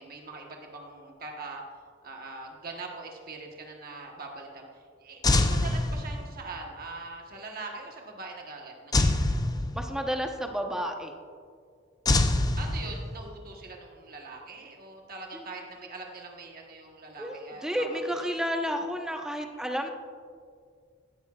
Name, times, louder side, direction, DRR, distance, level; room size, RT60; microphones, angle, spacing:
voice 1, 0.0-1.6 2.0-9.4 12.6-18.3, right 3 dB, 50° right, 1 dB, 1.2 m, -42 dB
sound 1, 5.2-6.5 8.9-10.2 12.0-13.3, left 2 dB, 20° left, 0.5 m, -25 dB
voice 2, 9.7-11.1 15.3-15.4 17.2-19.9, equal, 5° right, 3 dB, 0.9 m, -31 dB
15.5 x 12.0 x 2.4 m, 2.1 s
head